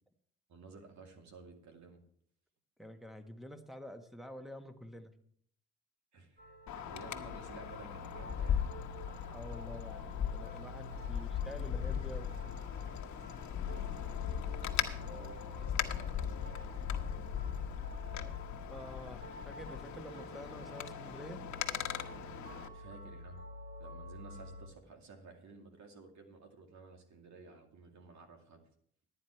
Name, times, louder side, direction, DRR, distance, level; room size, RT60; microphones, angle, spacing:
voice 1, 0.5-2.0 6.1-6.4 6.8-8.7 11.5-11.6 14.6-16.7 22.7-23.4 23.8-28.6, right 4 dB, 65° right, 4 dB, 2.4 m, -53 dB
voice 2, 2.8-5.1 9.3-12.3 18.7-21.4, equal, ahead, 7 dB, 1.3 m, -48 dB
sound 1, 6.4-24.7, left 2 dB, 40° right, 3.6 m, -49 dB
Wind, 6.7-22.7, left 9 dB, 70° left, 1.1 m, -39 dB
12.0 x 9.5 x 4.5 m, 0.63 s
cardioid pair, 90°, 30 cm